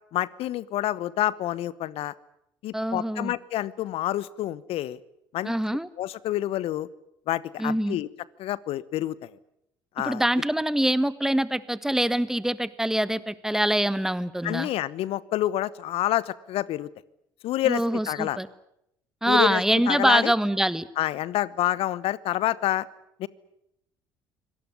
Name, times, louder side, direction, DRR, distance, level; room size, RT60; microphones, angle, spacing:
voice 1, 0.1-2.1 2.6-5.0 5.3-5.5 6.0-6.9 7.3-8.1 8.4-9.3 10.0-10.2 14.4-16.9 17.4-18.4 19.3-20.3 21.0-22.9 23.2-23.3, left 14 dB, 60° left, 20 dB, 1.0 m, -28 dB
voice 2, 2.7-3.3 5.4-5.9 7.6-8.0 10.0-14.7 17.6-18.5 19.2-20.9, right 1 dB, 5° right, 16 dB, 1.4 m, -24 dB
25.0 x 18.5 x 9.9 m, 0.80 s
hypercardioid pair, 55°, 11 cm